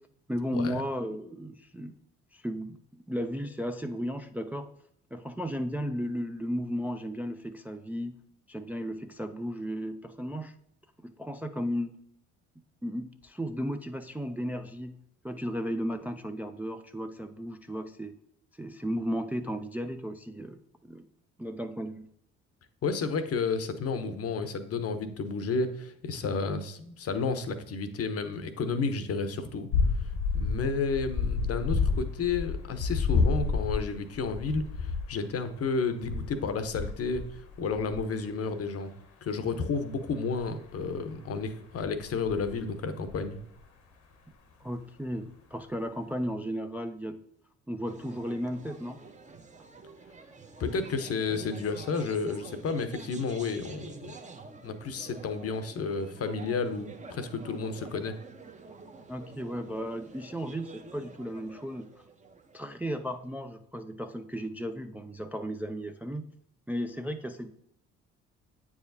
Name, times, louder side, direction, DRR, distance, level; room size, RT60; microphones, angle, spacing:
voice 1, 0.3-1.9 2.3-4.7 5.1-8.2 8.5-10.5 11.0-11.9 12.8-15.0 15.2-18.2 18.6-21.1 21.4-22.1 44.6-47.2 47.7-49.0 59.1-61.9 62.5-66.2 66.7-67.5, equal, 5° right, 7 dB, 0.4 m, -35 dB
voice 2, 22.8-29.7 30.0-38.9 39.2-43.4 50.6-54.1 54.6-58.2, left 4 dB, 45° left, 10 dB, 0.8 m, -31 dB
sound 1, 29.7-35.1 36.0-38.0 40.3-41.0 41.7-42.6 43.0-43.4, left 4 dB, 75° left, 1.1 m, -30 dB
sound 2, 47.8-63.3, right 4 dB, 20° right, 0.8 m, -48 dB
8.5 x 4.8 x 2.7 m, 0.70 s
hypercardioid pair, 50°, 34 cm